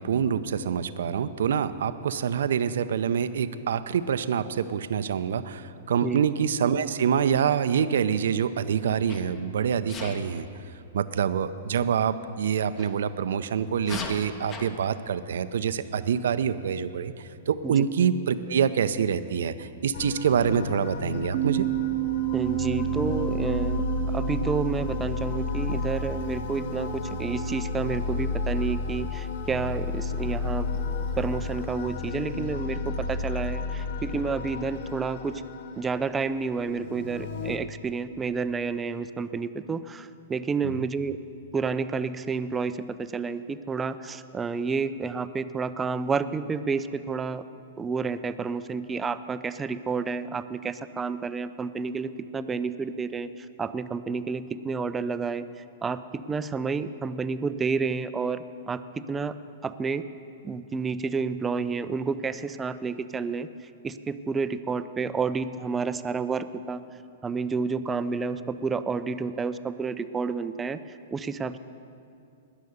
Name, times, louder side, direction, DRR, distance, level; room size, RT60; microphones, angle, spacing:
voice 1, 0.0-10.5 10.9-21.7 40.6-40.7, right 7 dB, 75° right, 12 dB, 0.5 m, -26 dB
Sneeze, 9.1-9.4 9.9-10.2 12.7-12.9 13.8-14.7, left 4 dB, 30° left, 1.4 m, -36 dB
sound 1, 19.9-37.6, left 3 dB, 60° left, 0.8 m, -32 dB
Bass guitar, 21.3-27.6, right 22 dB, 50° right, 0.9 m, -31 dB
voice 2, 22.3-30.7 31.2-35.4 35.8-41.2 41.5-47.4 47.8-58.4 58.7-59.4 59.6-60.1 60.4-66.8 67.2-71.6, right 5 dB, 15° right, 12 dB, 0.5 m, -30 dB
19.5 x 6.6 x 6.6 m, 2.6 s
hypercardioid pair, 120°, 0 cm